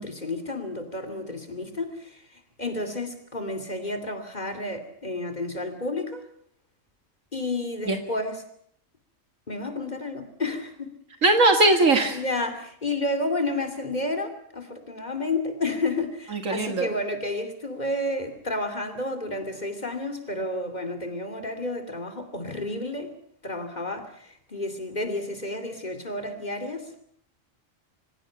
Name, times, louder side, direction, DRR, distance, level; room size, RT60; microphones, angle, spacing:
voice 1, 0.0-6.2 7.3-8.4 9.5-11.0 12.1-23.1 23.4-26.9, left 2 dB, 35° left, 2.9 m, -31 dB
voice 2, 11.2-12.2 16.3-16.9, right 2 dB, 80° right, 2.2 m, -20 dB
25.5 x 16.5 x 8.7 m
omnidirectional pair, 1.3 m